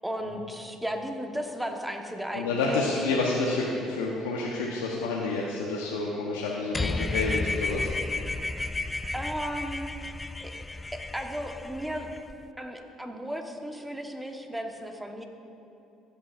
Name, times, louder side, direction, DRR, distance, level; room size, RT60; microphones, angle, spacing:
voice 1, 0.0-2.8 9.1-9.9 10.4-10.5 10.9-12.1 12.6-15.2, equal, 5° right, 4 dB, 1.1 m, -35 dB
voice 2, 2.3-7.9, left 3 dB, 90° left, -3 dB, 0.8 m, -29 dB
sound 1, 6.7-12.3, left 2 dB, 20° left, 0.3 m, -32 dB
15.5 x 8.3 x 2.5 m, 2.8 s
hypercardioid pair, 60°, 0 cm